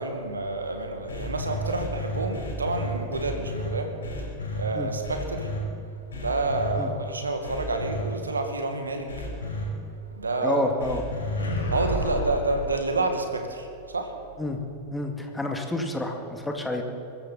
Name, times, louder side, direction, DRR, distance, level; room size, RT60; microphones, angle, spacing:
voice 1, 0.0-5.5 6.2-9.3 10.1-10.8 11.7-14.2, right 2 dB, 75° right, 5 dB, 2.0 m, -29 dB
sound 1, 1.1-3.7 4.0-4.6 5.0-5.6 6.1-6.7 7.4-8.0 9.1-9.6 10.8-12.8, left 2 dB, 70° left, 5.1 m, -31 dB
voice 2, 10.4-11.0 14.4-14.6 14.9-16.8, left 2 dB, 5° left, 3 dB, 2.1 m, -29 dB
23.0 x 14.0 x 4.2 m, 2.6 s
figure-of-eight pair, 90°, 0 cm